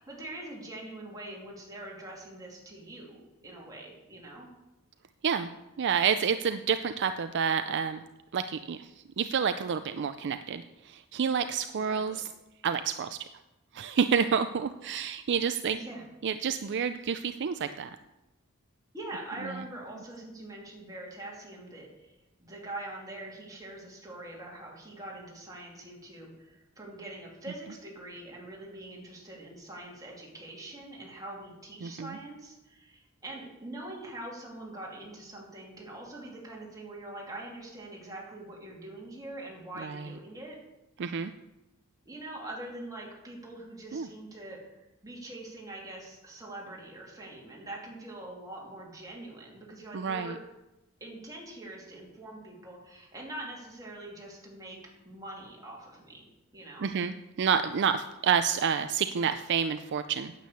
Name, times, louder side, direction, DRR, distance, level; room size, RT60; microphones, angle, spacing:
voice 1, 0.0-4.5 11.7-12.1 15.7-16.0 18.9-40.5 42.0-50.4 51.0-54.8 55.0-56.9, right 1 dB, 15° right, -3 dB, 2.9 m, -44 dB
voice 2, 5.8-8.0 8.3-8.9 9.2-12.3 12.6-13.2 13.7-15.8 16.2-18.0 31.8-32.2 39.8-40.0 41.0-41.3 43.9-44.1 49.9-50.4 56.8-60.3, right 7 dB, 55° right, 10 dB, 0.4 m, -29 dB
9.3 x 8.4 x 6.9 m, 0.99 s
head